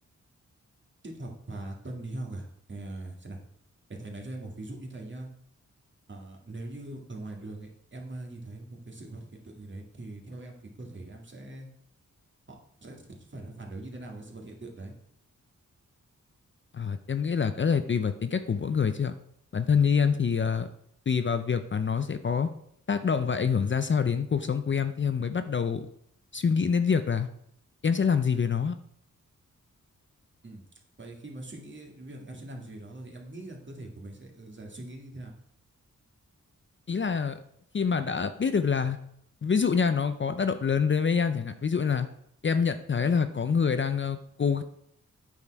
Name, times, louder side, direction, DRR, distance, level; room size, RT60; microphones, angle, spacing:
voice 1, 1.0-3.4 3.9-5.3 6.1-11.7 12.5-14.9 30.4-30.6 31.0-35.3, right 2 dB, 35° right, 0 dB, 2.0 m, -42 dB
voice 2, 16.7-19.1 19.5-20.7 21.1-22.5 22.9-25.9 26.3-27.3 27.8-28.8 36.9-37.4 37.7-39.0 39.4-42.1 42.4-44.6, left 6 dB, 40° left, 10 dB, 0.5 m, -26 dB
8.8 x 6.4 x 4.7 m, 0.71 s
wide cardioid pair, 95°, 31 cm